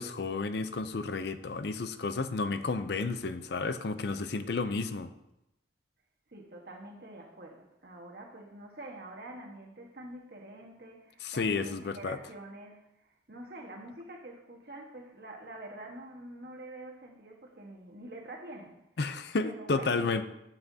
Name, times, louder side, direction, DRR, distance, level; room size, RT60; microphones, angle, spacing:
voice 1, 0.0-5.1 11.2-12.2 19.0-20.2, left 4 dB, 65° left, 11 dB, 0.5 m, -32 dB
voice 2, 6.3-18.8 19.4-20.0, right 1 dB, 55° right, 0 dB, 1.4 m, -46 dB
12.0 x 5.8 x 2.8 m, 0.86 s
head